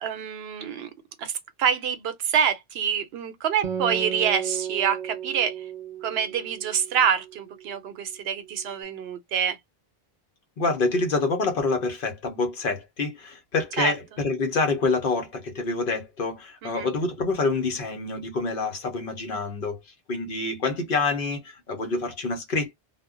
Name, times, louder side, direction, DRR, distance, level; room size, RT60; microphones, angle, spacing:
voice 1, 0.0-0.9 1.2-1.3 1.6-5.5 6.0-9.6 13.8-13.9 16.6-16.9, right 8 dB, 80° right, 0.8 m, -26 dB
Acoustic guitar, 3.6-7.4, right 8 dB, 50° right, 0.5 m, -33 dB
voice 2, 10.6-19.8 20.1-22.7, left 3 dB, 60° left, 0.9 m, -27 dB
2.2 x 2.1 x 3.6 m
omnidirectional pair, 1.0 m